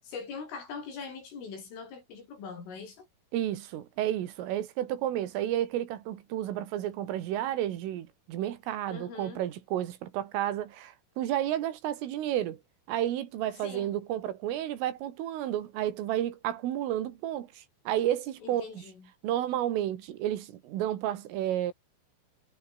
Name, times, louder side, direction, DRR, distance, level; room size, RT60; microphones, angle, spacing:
voice 1, 0.0-3.1 8.9-9.4 13.6-13.9 18.4-19.1, left 5 dB, 75° left, 10.0 m, -42 dB
voice 2, 3.3-12.6 12.9-18.7 19.2-21.7, right 12 dB, 80° right, 4.7 m, -31 dB
omnidirectional pair, 5.8 m